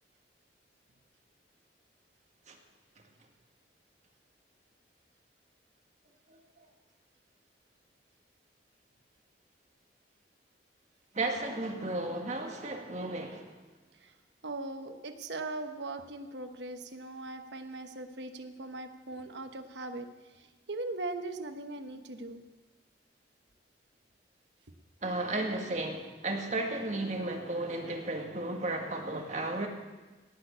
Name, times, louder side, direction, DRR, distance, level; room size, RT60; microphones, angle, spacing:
voice 1, 11.1-13.5 25.0-29.7, right 2 dB, 40° right, 2 dB, 1.7 m, -34 dB
voice 2, 14.4-22.4, right 2 dB, 75° right, 7 dB, 1.1 m, -40 dB
17.5 x 6.2 x 8.5 m, 1.2 s
head